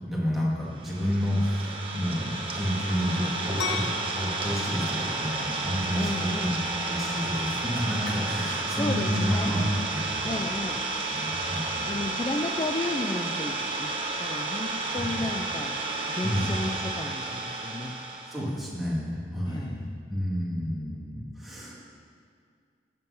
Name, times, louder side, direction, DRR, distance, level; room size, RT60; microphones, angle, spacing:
voice 1, 0.0-3.9 4.1-6.6 6.9-9.6 9.9-10.4 11.1-11.9 15.0-15.2 16.2-16.5 17.9-18.0 18.3-21.8, equal, ahead, -6 dB, 2.3 m, -30 dB
Idling, 0.8-18.5, right 2 dB, 30° right, 1.1 m, -32 dB
sound 1, 3.6-10.9, left 5 dB, 90° left, 1.0 m, -41 dB
voice 2, 6.0-6.5 8.8-9.5 10.2-10.8 11.7-13.9 14.2-15.8 16.1-18.0 19.5-19.8, left 2 dB, 25° left, 3 dB, 0.4 m, -33 dB
13.5 x 7.6 x 5.9 m, 2.2 s
head